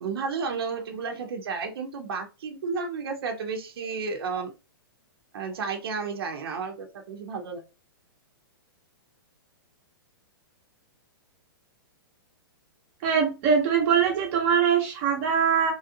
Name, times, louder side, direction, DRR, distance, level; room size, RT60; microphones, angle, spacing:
voice 1, 0.0-4.5 5.3-7.6, right 5 dB, 75° right, 0.7 m, -32 dB
voice 2, 13.0-15.7, right 7 dB, 40° right, 0.8 m, -22 dB
3.1 x 2.4 x 2.7 m
hypercardioid pair, 135°, 13 cm